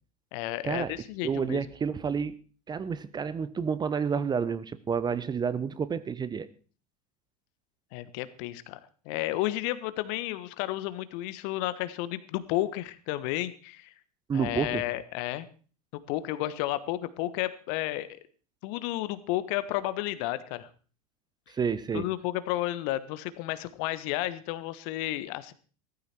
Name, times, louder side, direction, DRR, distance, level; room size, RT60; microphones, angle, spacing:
voice 1, 0.3-1.7 7.9-8.8 9.0-13.9 14.3-15.5 15.9-18.2 18.6-20.7 21.9-25.5, left 15 dB, 55° left, 14 dB, 1.4 m, -32 dB
voice 2, 1.2-2.3 2.7-6.5 14.3-14.8 21.6-22.1, right 6 dB, 20° right, 15 dB, 1.0 m, -29 dB
15.5 x 14.0 x 4.5 m, 0.39 s
figure-of-eight pair, 85°, 20 cm